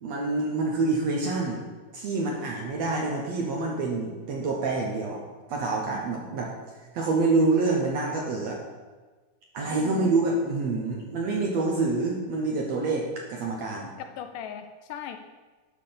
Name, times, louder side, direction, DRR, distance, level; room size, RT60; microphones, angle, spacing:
voice 1, 0.0-1.6 1.9-5.2 5.5-6.5 6.9-8.6 9.5-13.9, right 3 dB, 70° right, -1 dB, 1.7 m, -27 dB
voice 2, 9.7-10.1 13.8-15.2, left 9 dB, 80° left, 7 dB, 2.0 m, -39 dB
10.0 x 3.9 x 6.8 m, 1.3 s
omnidirectional pair, 3.9 m